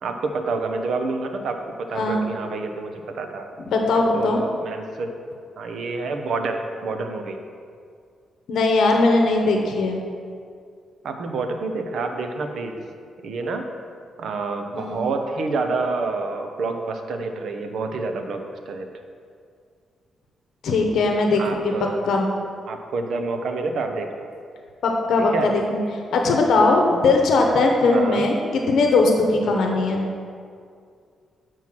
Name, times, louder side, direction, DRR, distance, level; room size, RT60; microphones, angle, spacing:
voice 1, 0.0-3.5 4.1-5.1 5.6-7.4 11.0-12.8 13.2-13.6 14.2-18.9 21.4-22.0 22.7-24.3 25.3-25.5 27.8-28.2 29.4-29.8, right 3 dB, 60° right, 5 dB, 0.7 m, -28 dB
voice 2, 3.7-4.4 8.5-10.0 14.7-15.0 20.6-21.7 22.0-22.3 24.8-25.8 26.1-30.1, left 3 dB, 70° left, 2 dB, 0.8 m, -19 dB
7.5 x 4.5 x 6.0 m, 2.2 s
cardioid pair, 150°, 0 cm